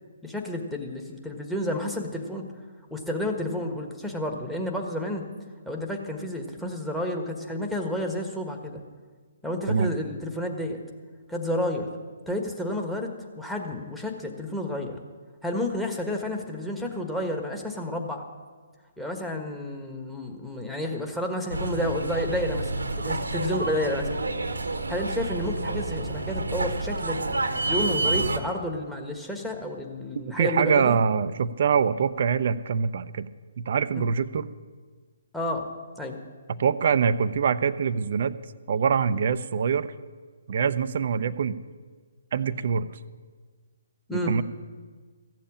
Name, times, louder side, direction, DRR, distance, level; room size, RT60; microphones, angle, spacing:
voice 1, 0.2-2.5 2.9-5.2 5.6-8.8 9.4-10.8 11.3-11.9 12.3-15.0 15.4-18.2 19.0-24.2 24.9-31.0 33.9-34.1 35.3-35.7 35.9-36.2 44.1-44.3, left 1 dB, 5° left, 2 dB, 1.5 m, -31 dB
sound 1, 21.5-28.4, right 2 dB, 80° right, 1.1 m, -29 dB
voice 2, 30.2-33.3 33.6-34.5 36.5-38.4 38.7-39.9 40.5-41.6 42.3-42.9 44.1-44.4, right 6 dB, 55° right, 14 dB, 0.6 m, -24 dB
15.0 x 7.4 x 8.6 m, 1.5 s
figure-of-eight pair, 135°, 0 cm